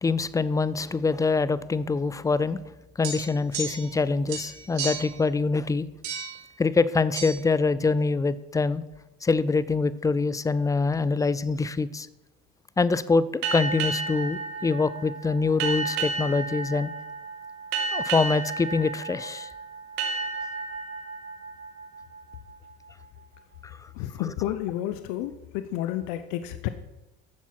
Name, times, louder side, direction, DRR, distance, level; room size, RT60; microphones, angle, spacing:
voice 1, 0.0-2.6 3.0-5.9 6.6-8.8 9.2-12.1 12.8-16.9 17.9-19.5 23.6-23.8 24.2-24.3, left 4 dB, 10° left, 17 dB, 0.4 m, -25 dB
sound 1, 3.0-4.0 4.3-5.2 6.0-6.4 7.2-7.3, right 5 dB, 65° right, 3.5 m, -34 dB
sound 2, 13.4-22.7, right 4 dB, 85° right, 2.3 m, -32 dB
voice 2, 24.0-26.7, left 12 dB, 75° left, 11 dB, 0.7 m, -31 dB
10.5 x 7.3 x 5.9 m, 0.96 s
supercardioid pair, 105°, 31 cm